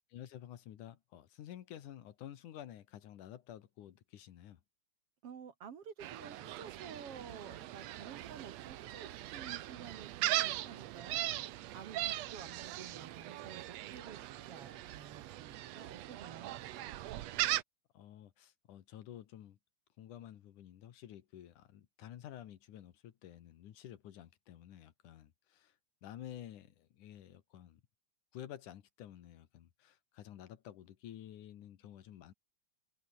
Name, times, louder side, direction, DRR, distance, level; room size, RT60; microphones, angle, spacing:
voice 1, 0.1-4.6 17.9-19.6 20.0-25.7 26.0-27.8 28.3-32.3, left 11 dB, 70° left, 2.9 m, -51 dB
voice 2, 5.2-11.2 11.7-16.6 17.1-17.3, right 7 dB, 50° right, 2.4 m, -51 dB
Gull seagull, 6.0-17.6, right 14 dB, 70° right, 1.8 m, -39 dB
omnidirectional pair, 3.8 m